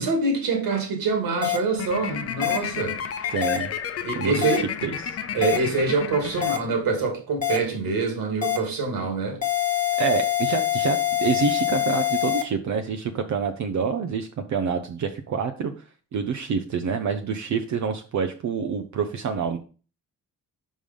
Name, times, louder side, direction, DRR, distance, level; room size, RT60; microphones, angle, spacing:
voice 1, 0.0-3.0 4.0-4.6 5.3-9.4, right 4 dB, 85° right, 2.5 m, -25 dB
sound 1, 1.4-1.6 2.4-2.6 3.4-3.6 4.4-4.6 5.4-5.6 6.4-6.6 7.4-7.6 8.4-8.6 9.4-12.4, left 12 dB, 25° left, 1.3 m, -24 dB
robot chat, 1.8-7.0, left 8 dB, 45° left, 0.6 m, -32 dB
voice 2, 3.3-3.7 4.2-5.2 9.9-15.7 16.1-19.6, right 6 dB, 55° right, 0.7 m, -27 dB
5.5 x 5.0 x 5.2 m
cardioid pair, 130°, 34 cm